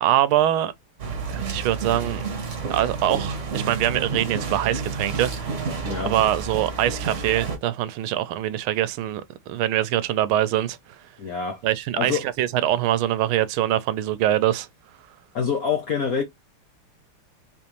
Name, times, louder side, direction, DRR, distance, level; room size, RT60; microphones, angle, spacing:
voice 1, 0.0-0.7 1.3-2.2 2.7-5.5 6.0-10.8 11.6-14.7, right 12 dB, 75° right, 1.4 m, -23 dB
sound 1, 1.0-7.6, right 4 dB, 45° right, 1.1 m, -30 dB
voice 2, 11.2-11.6 12.0-12.3 15.3-16.2, left 6 dB, 65° left, 0.9 m, -25 dB
4.0 x 3.4 x 3.0 m
omnidirectional pair, 2.4 m